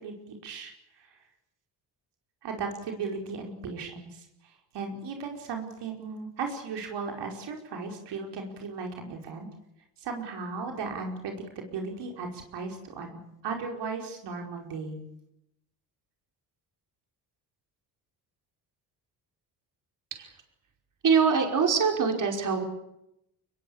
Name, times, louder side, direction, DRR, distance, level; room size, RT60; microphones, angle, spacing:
voice 1, 0.0-1.3 2.4-9.5 10.0-13.2 13.4-15.0, right 4 dB, 75° right, 2 dB, 5.0 m, -36 dB
voice 2, 21.0-22.6, right 6 dB, 45° right, 3 dB, 5.4 m, -23 dB
24.5 x 21.5 x 8.7 m, 0.80 s
cardioid pair, 100°, 41 cm